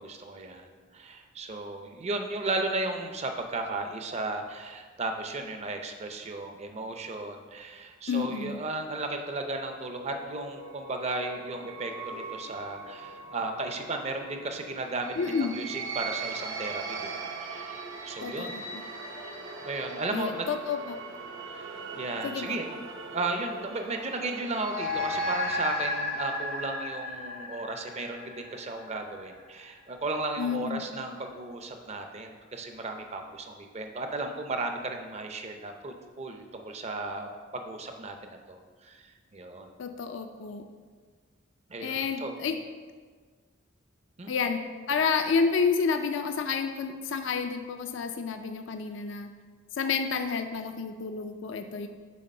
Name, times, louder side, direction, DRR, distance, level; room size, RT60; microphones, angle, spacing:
voice 1, 0.0-18.6 19.6-20.4 21.4-37.3 37.5-39.7 41.7-42.3 44.2-44.3, right 2 dB, 35° right, 5 dB, 0.6 m, -35 dB
voice 2, 8.1-8.6 15.2-15.6 18.2-18.9 20.1-21.0 22.2-22.6 30.4-30.9 39.8-40.6 41.8-42.6 44.3-44.6 44.9-49.3 49.8-51.9, left 5 dB, 65° left, 7 dB, 0.4 m, -30 dB
sound 1, 9.4-26.2, right 4 dB, 70° right, 0.8 m, -41 dB
sound 2, 24.6-29.3, left 2 dB, 80° left, 1.2 m, -33 dB
6.4 x 3.8 x 5.3 m, 1.5 s
head